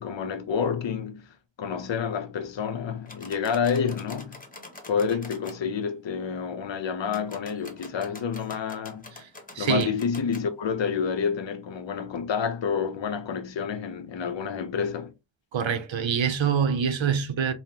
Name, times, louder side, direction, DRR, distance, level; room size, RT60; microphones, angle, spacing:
voice 1, 0.0-4.4 4.9-9.1 9.6-15.1, left 6 dB, 75° left, 0.7 m, -29 dB
sound 1, 3.1-5.6 7.1-10.5, left 2 dB, 20° left, 0.8 m, -46 dB
voice 2, 9.5-9.9 15.5-17.5, right 7 dB, 85° right, 0.7 m, -25 dB
5.4 x 2.1 x 2.9 m
wide cardioid pair, 90°, 45 cm